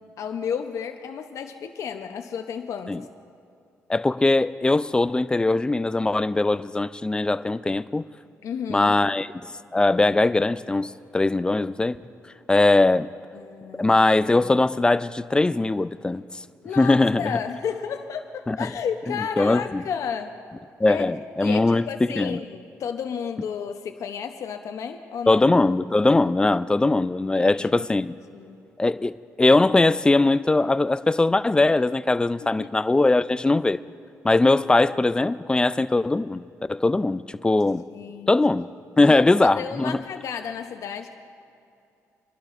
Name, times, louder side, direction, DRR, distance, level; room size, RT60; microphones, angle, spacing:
voice 1, 0.2-3.1 8.4-8.9 13.3-13.9 16.6-20.4 20.9-21.1 21.4-25.5 27.3-27.9 28.3-28.6 32.6-32.7 37.9-38.3 39.0-39.2 39.6-41.1, left 7 dB, 65° left, 6 dB, 0.7 m, -32 dB
voice 2, 3.9-8.0 8.7-9.3 9.7-12.0 12.5-13.1 13.8-16.2 16.8-17.4 18.5-18.7 19.4-19.8 20.8-22.4 25.3-28.1 28.8-33.8 34.2-36.4 36.7-37.9 38.3-38.7 39.0-40.0, left 2 dB, 15° left, 14 dB, 0.3 m, -21 dB
29.0 x 11.5 x 2.5 m, 2.5 s
cardioid pair, 80°, 6 cm